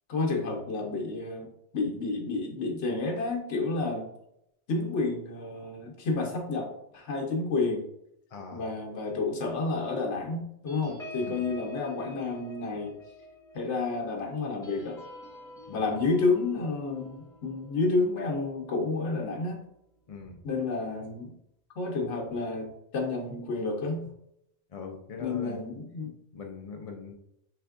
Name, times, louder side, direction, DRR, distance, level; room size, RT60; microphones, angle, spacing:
voice 1, 0.1-1.5 1.7-4.1 4.7-7.8 8.5-12.9 13.5-15.0 15.7-19.6 20.4-21.3 21.8-24.1 25.2-26.1, left 3 dB, 85° left, 0 dB, 1.1 m, -30 dB
voice 2, 8.3-8.6 11.2-11.5 15.7-16.0 20.1-20.4 24.7-25.6 26.3-27.1, left 5 dB, 50° left, 2 dB, 0.4 m, -41 dB
sound 1, 10.7-19.6 20.0-20.2 20.5-20.8, left 2 dB, 5° left, 1.0 m, -47 dB
5.6 x 3.4 x 2.5 m, 0.78 s
omnidirectional pair, 1.2 m